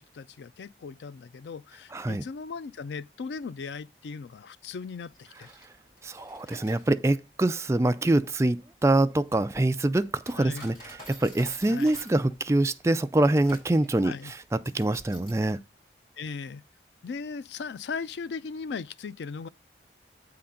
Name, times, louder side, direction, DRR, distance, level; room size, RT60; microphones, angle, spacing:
voice 1, 0.0-5.5 10.4-10.7 11.7-12.0 14.0-14.3 16.2-16.6 17.0-19.5, left 5 dB, 80° left, 0.4 m, -38 dB
voice 2, 1.9-2.2 6.0-15.6, right 2 dB, 15° right, 0.3 m, -25 dB
Coin (dropping), 5.0-15.5, equal, 50° left, 4.6 m, -50 dB
8.5 x 3.8 x 5.7 m
head